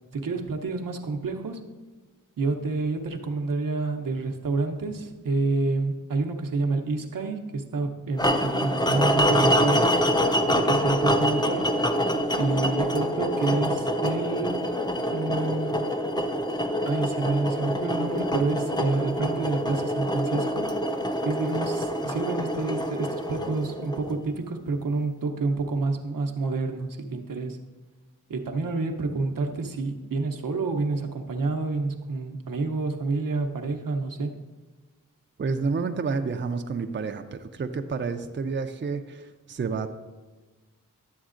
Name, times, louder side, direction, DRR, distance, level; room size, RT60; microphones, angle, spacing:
voice 1, 0.1-1.6 2.4-9.9 10.5-11.7 12.4-14.7 15.1-15.9 16.8-20.7 21.2-27.6 28.3-34.3, right 3 dB, 75° right, 4 dB, 0.8 m, -28 dB
sound 1, 8.2-24.3, equal, 15° left, 0.5 m, -26 dB
voice 2, 35.4-39.9, right 4 dB, 35° right, 7 dB, 0.5 m, -29 dB
11.5 x 7.1 x 2.5 m, 1.3 s
cardioid pair, 55°, 33 cm